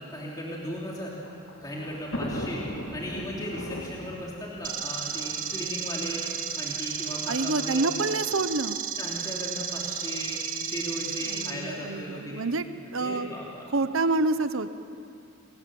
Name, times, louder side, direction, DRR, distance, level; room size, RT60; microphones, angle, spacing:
voice 1, 0.1-1.1 1.6-6.3 6.5-7.8 9.0-12.4 12.9-13.7, equal, 15° left, -4 dB, 3.0 m, -37 dB
Thunder, 0.7-6.0 6.8-6.9 7.2-7.3 8.3-8.6, equal, 75° left, 3.2 m, -38 dB
sound 1, 4.6-11.5, right 7 dB, 40° right, 1.8 m, -33 dB
voice 2, 7.3-8.8 11.3-12.7 12.9-13.4 13.7-14.7, right 3 dB, 70° right, 12 dB, 1.0 m, -27 dB
29.0 x 21.5 x 7.7 m, 2.5 s
head